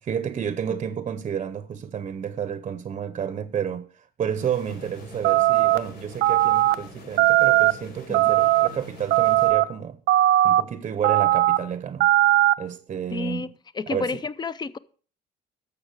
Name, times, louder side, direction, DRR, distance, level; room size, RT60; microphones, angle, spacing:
voice 1, 0.0-10.0 10.4-12.1 12.6-13.5 13.9-14.2, right 8 dB, 40° right, 0.7 m, -31 dB
sound 1, 4.4-9.5, left 1 dB, 75° left, 5.1 m, -44 dB
sound 2, 5.2-5.8 6.2-6.7 7.2-7.7 8.1-8.7 9.1-9.6 10.1-10.6 11.0-11.6 12.0-12.5, right 15 dB, 75° right, 0.5 m, -18 dB
voice 2, 13.1-13.5 13.7-14.8, left 4 dB, 25° left, 0.6 m, -30 dB
12.0 x 7.2 x 4.7 m
cardioid pair, 110°, 17 cm